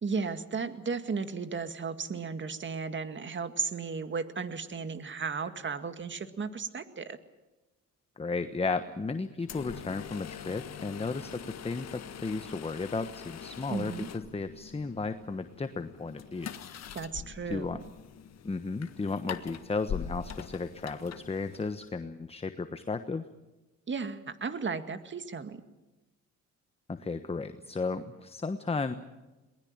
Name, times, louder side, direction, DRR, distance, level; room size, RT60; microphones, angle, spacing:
voice 1, 0.0-7.2 13.7-14.1 16.9-17.8 23.9-25.6, right 5 dB, 40° right, 10 dB, 2.0 m, -35 dB
voice 2, 8.2-13.9 14.3-16.5 17.5-17.8 18.4-23.3 26.9-28.9, left 4 dB, 20° left, 10 dB, 1.2 m, -34 dB
sound 1, 9.4-22.0, left 8 dB, 60° left, 1.6 m, -43 dB
22.5 x 20.5 x 8.9 m, 1.1 s
cardioid pair, 90°, 30 cm